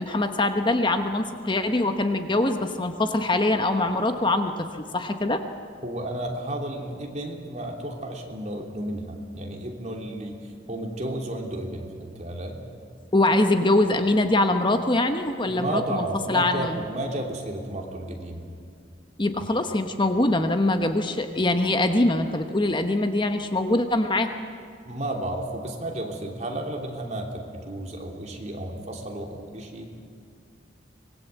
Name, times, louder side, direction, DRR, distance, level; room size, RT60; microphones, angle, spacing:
voice 1, 0.0-4.5 4.9-5.4 13.1-16.8 19.2-24.3, left 2 dB, 25° left, 7 dB, 1.1 m, -23 dB
voice 2, 5.8-12.6 15.5-18.5 24.8-29.9, right 1 dB, 40° right, 1 dB, 3.1 m, -32 dB
25.0 x 21.0 x 8.2 m, 2.3 s
head